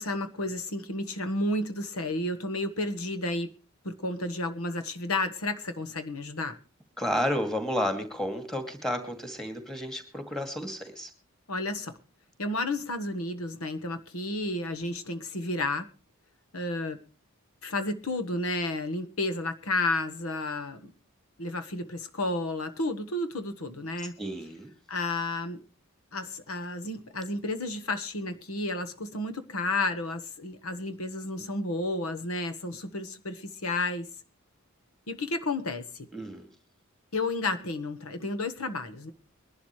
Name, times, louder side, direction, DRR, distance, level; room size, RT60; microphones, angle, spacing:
voice 1, 0.0-3.5 3.8-6.5 11.5-11.9 12.4-15.9 16.5-17.0 17.6-20.9 21.4-24.1 24.9-25.6 26.1-34.1 35.1-36.1 37.1-39.1, left 2 dB, 90° left, 9 dB, 1.4 m, -31 dB
voice 2, 7.0-11.1 24.2-24.7 36.1-36.5, equal, ahead, 6 dB, 2.2 m, -31 dB
22.0 x 12.0 x 3.2 m, 0.33 s
head